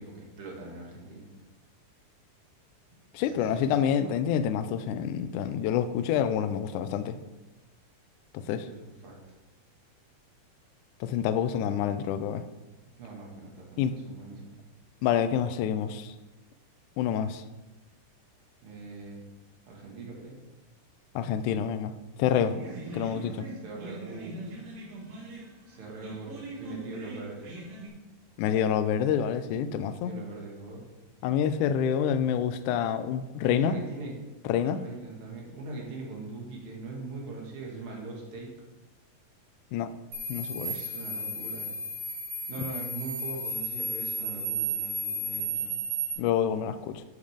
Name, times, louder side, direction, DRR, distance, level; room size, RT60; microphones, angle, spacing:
voice 1, 0.0-1.3 2.9-4.1 8.7-9.1 13.0-14.6 18.6-19.2 19.7-20.4 23.6-24.4 25.7-27.5 30.0-30.9 33.4-34.1 34.7-38.5 40.7-41.7 42.5-45.7, right 3 dB, 45° right, -2 dB, 2.5 m, -41 dB
voice 2, 3.1-7.2 8.3-8.7 11.0-12.4 13.8-13.9 15.0-16.1 17.0-17.4 21.2-21.9 22.2-22.5 22.9-23.5 28.4-30.1 31.2-33.8 34.5-34.8 39.7-39.9 40.3-40.8 46.2-47.0, left 9 dB, 80° left, 11 dB, 1.9 m, -27 dB
sound 1, 22.4-27.9, right 1 dB, 85° right, 3.6 m, -42 dB
sound 2, 40.1-46.1, right 2 dB, 65° right, 3.4 m, -33 dB
12.0 x 6.5 x 3.6 m, 1.1 s
omnidirectional pair, 3.9 m